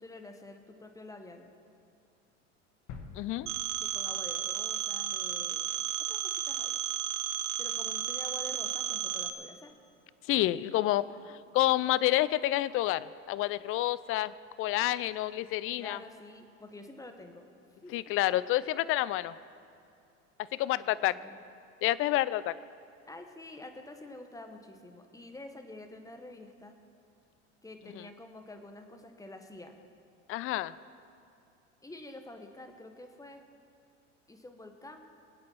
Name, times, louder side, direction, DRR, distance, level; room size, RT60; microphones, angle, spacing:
voice 1, 0.0-1.5 3.8-5.7 6.0-6.7 7.6-9.8 11.1-11.4 15.8-17.4 17.8-18.1 20.7-21.4 23.1-26.7 27.6-29.7 31.8-33.4 34.3-35.2, left 2 dB, 10° left, 6 dB, 1.4 m, -48 dB
sound 1, 2.9-4.8 5.2-5.3, left 5 dB, 60° left, 1.5 m, -49 dB
voice 2, 3.1-3.5 10.3-14.3 14.6-16.0 17.9-19.3 20.5-21.2 21.8-22.5 30.3-30.7, left 15 dB, 35° left, 18 dB, 0.4 m, -29 dB
Telephone, 3.5-9.3, right 11 dB, 70° right, 0.9 m, -33 dB
23.0 x 8.5 x 4.7 m, 2.5 s
hypercardioid pair, 85°, 37 cm